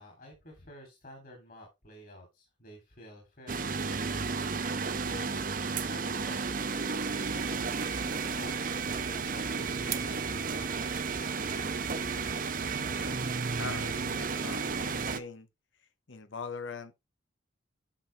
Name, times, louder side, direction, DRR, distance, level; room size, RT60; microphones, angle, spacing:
voice 1, 0.0-7.6 8.0-10.9, equal, 45° left, 3.0 m, -51 dB
sound 1, 3.5-15.2, right 4 dB, 45° right, 0.7 m, -32 dB
voice 2, 13.6-15.5 16.1-16.9, left 4 dB, 80° left, 0.9 m, -41 dB
10.0 x 6.2 x 3.3 m
head